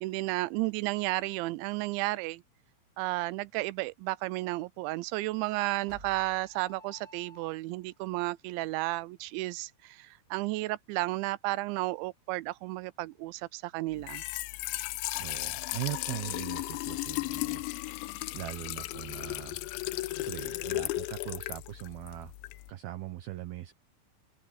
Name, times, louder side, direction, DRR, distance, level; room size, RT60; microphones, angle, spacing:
voice 1, 0.0-2.4 3.0-14.2, right 20 dB, 85° right, 3.0 m, -33 dB
sound 1, 5.9-8.0, right 1 dB, 20° right, 5.3 m, -53 dB
Trickle dribble / Fill (with liquid), 13.9-22.7, left 19 dB, 85° left, 3.0 m, -35 dB
voice 2, 15.2-17.6 18.3-19.6 20.2-22.3 22.7-23.7, right 15 dB, 70° right, 2.5 m, -40 dB
omnidirectional pair, 5.2 m